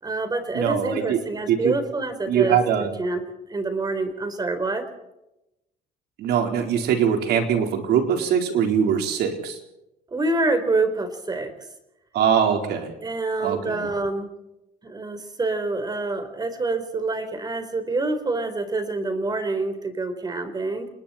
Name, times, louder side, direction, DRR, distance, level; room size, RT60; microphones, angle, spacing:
voice 1, 0.0-2.6 3.0-3.2 3.5-4.9 10.1-11.5 13.0-14.3 14.8-20.9, right 3 dB, 25° right, 9 dB, 4.0 m, -26 dB
voice 2, 0.5-1.2 1.5-1.8 2.3-2.9 6.2-9.6 12.1-12.9 13.4-13.9, right 8 dB, 75° right, 4 dB, 4.3 m, -22 dB
28.5 x 20.5 x 4.4 m, 0.89 s
cardioid pair, 110°, 17 cm